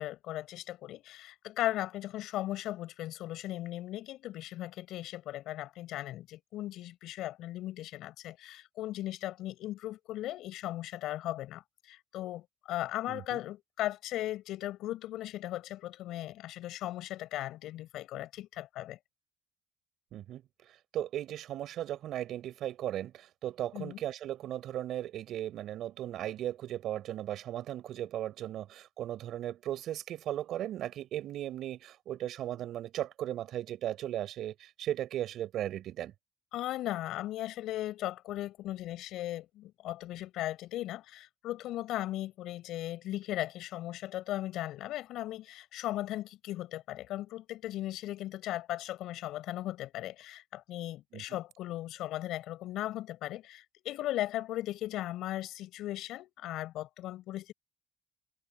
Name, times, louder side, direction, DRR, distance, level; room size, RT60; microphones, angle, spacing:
voice 1, 0.0-19.0 23.7-24.0 36.5-57.5, left 14 dB, 90° left, 5.8 m, -37 dB
voice 2, 13.1-13.4 20.1-20.4 20.9-36.1 51.1-51.2, right 12 dB, 80° right, 5.3 m, -37 dB
cardioid pair, 90°, 0 cm